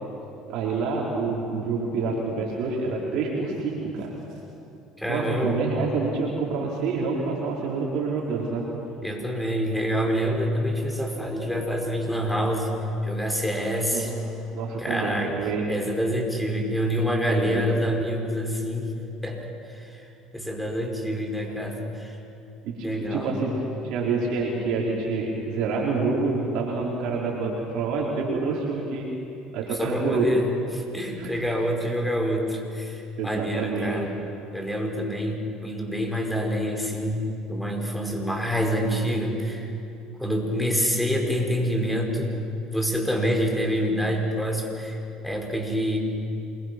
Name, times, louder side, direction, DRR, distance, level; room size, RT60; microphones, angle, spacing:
voice 1, 0.5-4.1 5.1-8.7 13.9-14.1 14.5-15.7 17.3-17.9 22.6-29.1 29.5-30.4 31.2-31.3 33.2-34.0, right 4 dB, 65° right, -3 dB, 4.5 m, -27 dB
voice 2, 5.0-5.6 9.0-12.7 13.0-14.1 14.8-15.3 15.7-19.0 19.2-22.2 22.8-23.3 29.7-30.4 30.7-34.1 34.5-39.7 40.2-42.3 42.7-46.0, equal, 5° left, 1 dB, 5.5 m, -27 dB
28.0 x 23.0 x 6.2 m, 2.7 s
hypercardioid pair, 80°, 0 cm